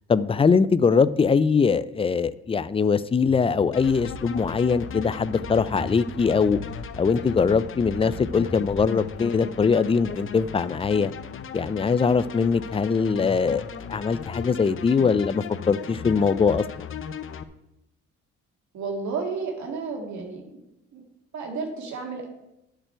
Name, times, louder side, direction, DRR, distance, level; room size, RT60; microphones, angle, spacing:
voice 1, 0.1-6.6 7.0-11.1 11.5-13.6 13.9-16.9, left 5 dB, 20° left, 15 dB, 0.4 m, -22 dB
sound 1, 3.7-17.4, left 7 dB, 45° left, 0.8 m, -37 dB
sound 2, 4.8-8.6, left 1 dB, 10° right, 1.9 m, -41 dB
voice 2, 18.7-20.6 20.9-21.0 21.3-22.3, right 4 dB, 70° right, 1 dB, 2.2 m, -32 dB
11.5 x 6.8 x 4.5 m, 0.87 s
cardioid pair, 90°, 30 cm